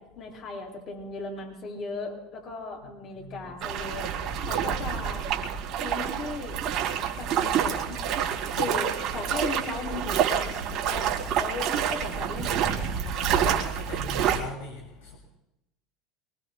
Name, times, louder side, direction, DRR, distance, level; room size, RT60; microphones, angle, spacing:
voice 1, 0.0-4.1 4.5-5.3 5.8-6.6 7.2-8.0 8.5-13.5, left 3 dB, 50° left, -1 dB, 7.7 m, -37 dB
voice 2, 3.1-3.5 4.4-4.5 5.6-5.9 6.9-7.4 8.3-8.7 12.9-15.2, left 3 dB, 90° left, -1 dB, 3.0 m, -43 dB
sound 1, 3.6-14.4, right 8 dB, 60° right, 2.4 m, -28 dB
24.0 x 23.0 x 2.3 m, 0.88 s
hypercardioid pair, 85°, 0 cm